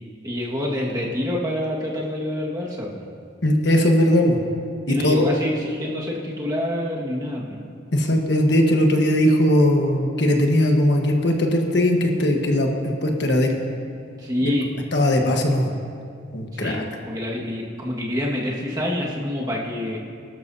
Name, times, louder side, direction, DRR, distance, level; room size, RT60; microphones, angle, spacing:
voice 1, 0.2-3.0 4.9-7.6 14.2-14.7 16.5-20.0, left 1 dB, 20° right, -4 dB, 1.7 m, -27 dB
voice 2, 3.4-4.4 4.9-5.2 7.9-13.6 14.9-15.7 16.3-16.8, left 1 dB, 65° left, 2 dB, 1.3 m, -19 dB
22.5 x 12.5 x 2.8 m, 2.4 s
head